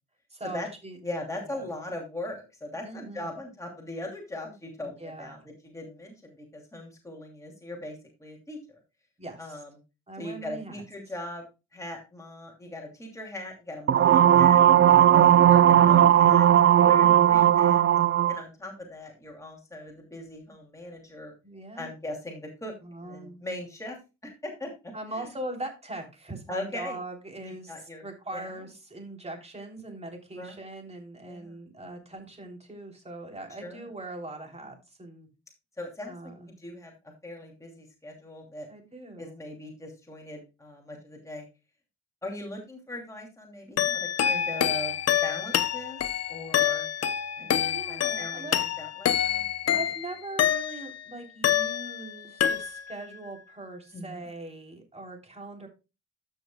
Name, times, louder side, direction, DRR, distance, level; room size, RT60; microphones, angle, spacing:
voice 1, 0.3-1.0 1.5-1.7 2.8-3.4 4.8-5.5 9.2-9.6 10.1-10.8 21.4-21.9 22.8-23.4 24.9-35.3 36.1-36.5 38.7-39.4 46.6-46.7 47.5-48.5 49.7-55.7, right 2 dB, 20° right, 3 dB, 3.4 m, -41 dB
voice 2, 1.0-8.8 9.4-9.8 10.2-17.8 18.3-21.3 21.7-22.7 23.0-24.0 24.2-24.7 25.1-25.3 26.5-27.0 27.4-28.0 28.3-28.5 30.3-30.6 31.3-31.6 33.6-33.9 35.8-36.9 37.2-38.7 39.2-41.4 42.2-46.0 46.3-46.9 47.4-49.7 53.9-54.3, left 1 dB, 10° left, 0 dB, 2.8 m, -40 dB
sound 1, 13.9-18.4, right 11 dB, 45° right, 0.6 m, -17 dB
sound 2, 43.8-51.0 51.4-52.1 52.4-53.0, left 10 dB, 55° left, 0.9 m, -27 dB
14.0 x 6.2 x 2.3 m, 0.27 s
cardioid pair, 90°, 30 cm